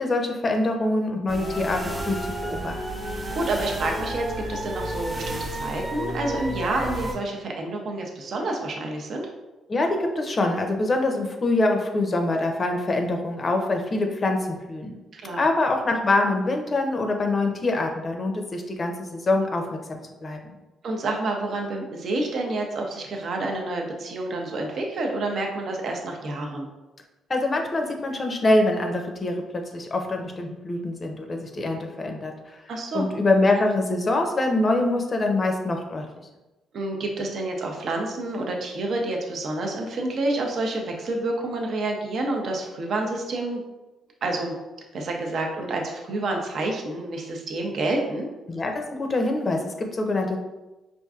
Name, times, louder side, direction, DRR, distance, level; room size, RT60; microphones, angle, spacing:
voice 1, 0.0-2.8 9.7-15.0 15.3-20.5 27.3-32.3 32.9-36.1 48.5-50.4, left 2 dB, 35° left, 3 dB, 0.5 m, -24 dB
sound 1, 1.3-7.1, right 1 dB, 25° right, 0.9 m, -31 dB
voice 2, 3.4-9.3 15.1-15.4 20.8-26.7 32.7-33.1 36.7-43.6 44.2-44.5 44.9-48.3, right 2 dB, 60° right, 1 dB, 0.6 m, -28 dB
4.4 x 2.5 x 2.4 m, 1.1 s
cardioid pair, 90°, 0 cm